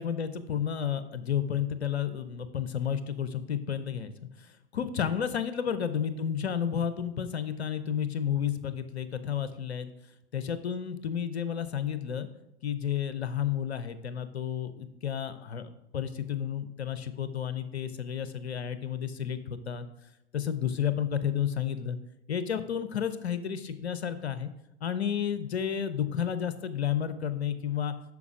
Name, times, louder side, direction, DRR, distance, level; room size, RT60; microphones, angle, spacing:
voice 1, 0.0-4.1 4.4-9.9 10.3-12.3 12.6-19.9 20.3-22.0 22.3-24.5 24.8-27.9, left 8 dB, 75° left, 12 dB, 0.7 m, -31 dB
7.1 x 5.9 x 4.8 m, 0.87 s
figure-of-eight pair, 90°, 33 cm